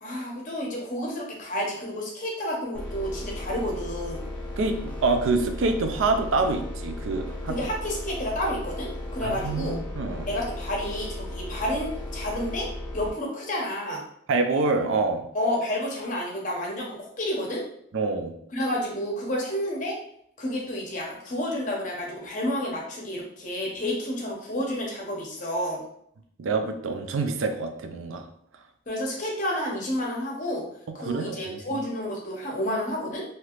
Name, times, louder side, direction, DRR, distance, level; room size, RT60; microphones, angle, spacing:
voice 1, 0.0-4.3 7.5-9.8 10.3-12.7 12.9-14.0 15.3-17.6 18.5-19.9 20.4-25.8 28.9-30.7 30.9-33.2, left 1 dB, 40° left, -2 dB, 0.8 m, -30 dB
sound 1, 2.7-13.1, left 1 dB, 10° left, 0.4 m, -35 dB
voice 2, 4.6-7.5 9.2-10.3 14.3-15.3 17.9-18.3 26.4-28.2 31.0-31.8, right 3 dB, 85° right, 6 dB, 0.4 m, -26 dB
3.3 x 2.8 x 2.4 m, 0.69 s
head